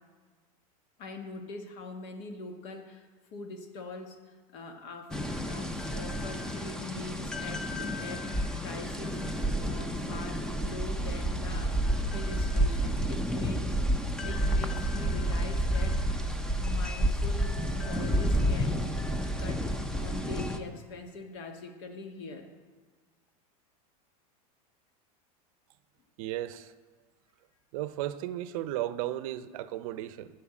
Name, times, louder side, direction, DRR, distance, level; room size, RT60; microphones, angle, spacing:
voice 1, 1.0-4.2 4.5-5.2 5.4-8.3 8.6-9.2 9.6-11.8 12.1-13.8 14.2-16.0 16.3-19.0 19.4-22.5, left 3 dB, 55° left, 1.5 m, -43 dB
sound 1, 5.1-20.6, equal, 5° left, 0.6 m, -30 dB
voice 2, 26.2-26.7 27.7-30.3, right 14 dB, 65° right, 0.6 m, -34 dB
13.5 x 4.6 x 7.5 m
supercardioid pair, 130°, 19 cm